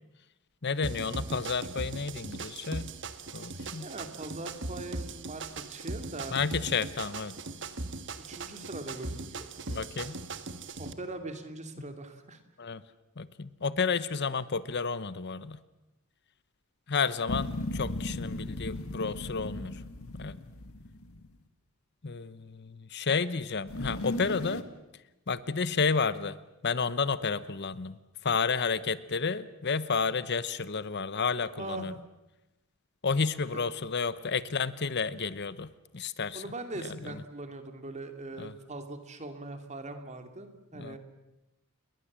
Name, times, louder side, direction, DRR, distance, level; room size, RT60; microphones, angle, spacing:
voice 1, 0.6-2.9 3.3-3.9 6.3-7.3 9.7-10.2 12.6-12.8 13.2-15.6 16.9-19.8 20.1-20.4 22.0-24.6 25.3-26.4 26.6-27.9 28.2-31.9 33.0-36.4 36.9-37.1 38.4-38.5 40.8-41.0, left 5 dB, 50° left, 16 dB, 0.9 m, -31 dB
sound 1, 0.8-10.9, right 3 dB, 55° right, 1.6 m, -39 dB
voice 2, 3.8-6.4 8.3-9.5 10.1-10.2 10.8-12.4 31.6-31.9 33.5-33.6 36.3-41.0, right 2 dB, 30° right, 7 dB, 2.6 m, -41 dB
sound 2, 17.3-21.3 23.7-24.6, left 1 dB, 75° left, 1.8 m, -36 dB
29.5 x 21.5 x 7.5 m, 0.97 s
head